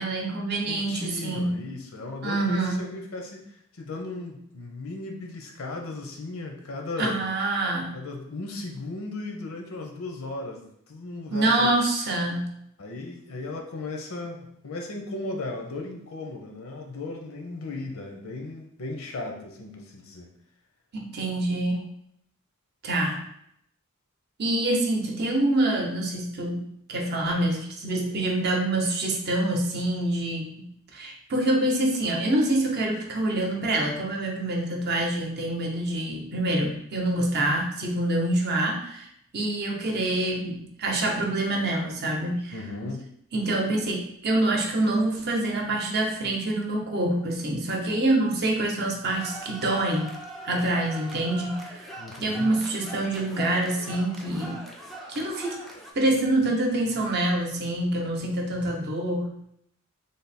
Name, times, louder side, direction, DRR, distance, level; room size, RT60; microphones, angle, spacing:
voice 1, 0.0-1.6 2.2-2.9 7.0-8.0 11.3-12.6 20.9-21.9 22.8-23.2 24.4-39.1 39.3-42.5 43.3-50.2 50.4-51.9 52.2-54.7 55.1-55.6 55.9-59.3, right 1 dB, 50° right, 1 dB, 0.7 m, -26 dB
voice 2, 0.7-3.4 3.7-7.2 7.9-11.7 12.8-20.3 42.5-43.0 52.0-52.5, left 2 dB, 75° left, 2 dB, 0.7 m, -36 dB
sound 1, 49.1-55.9, right 2 dB, ahead, 0.4 m, -41 dB
3.4 x 2.0 x 4.1 m, 0.71 s
head